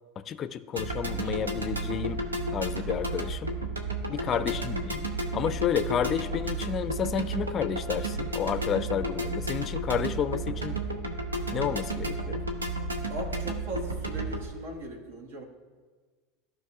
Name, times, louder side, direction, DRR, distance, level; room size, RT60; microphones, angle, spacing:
voice 1, 0.3-2.2 2.5-3.5 4.1-5.1 5.3-10.8 11.5-12.4, left 8 dB, 35° left, 14 dB, 0.4 m, -31 dB
sound 1, 0.8-14.5, right 2 dB, 90° right, 0.8 m, -32 dB
voice 2, 4.1-4.4 13.1-15.4, right 1 dB, 65° right, 2 dB, 1.5 m, -39 dB
15.0 x 5.3 x 2.4 m, 1.5 s
hypercardioid pair, 80°, 0 cm